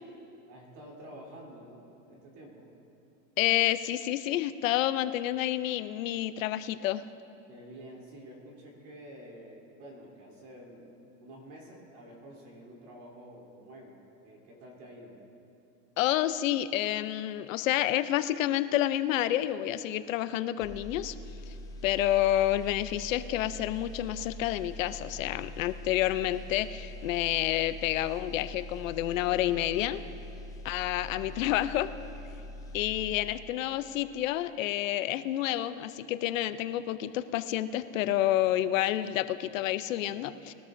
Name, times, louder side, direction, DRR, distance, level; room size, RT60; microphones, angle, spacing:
voice 1, 0.5-2.7 7.5-10.9 11.2-15.2 31.0-31.3, right 1 dB, 45° right, -2 dB, 3.3 m, -49 dB
voice 2, 3.4-7.0 16.0-21.2 21.5-21.6 21.8-30.0 30.6-31.9 32.7-40.5, left 13 dB, 65° left, 13 dB, 0.7 m, -29 dB
sound 1, 20.6-33.7 34.1-34.3, left 1 dB, 10° left, 0.5 m, -44 dB
20.5 x 13.0 x 2.6 m, 2.7 s
supercardioid pair, 145°, 42 cm